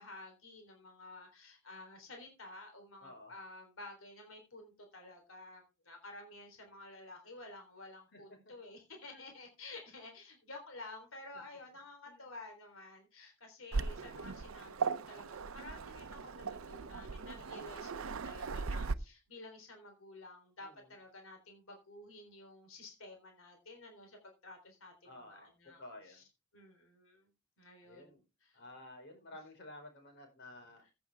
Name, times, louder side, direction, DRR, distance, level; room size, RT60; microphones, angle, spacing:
voice 1, 0.0-25.8 26.1-26.2 26.5-27.3 27.6-28.6 30.8-30.9, left 2 dB, 75° left, 4 dB, 3.8 m, -52 dB
voice 2, 3.0-3.3 8.1-8.5 9.1-9.2 12.1-12.2 20.6-20.9 25.0-25.5 25.8-26.2 27.8-28.2 28.5-30.8, left 1 dB, 60° left, 4 dB, 5.2 m, -53 dB
Waves surf, 13.7-18.9, right 4 dB, 85° right, 0.7 m, -38 dB
15.0 x 8.6 x 3.5 m, 0.27 s
head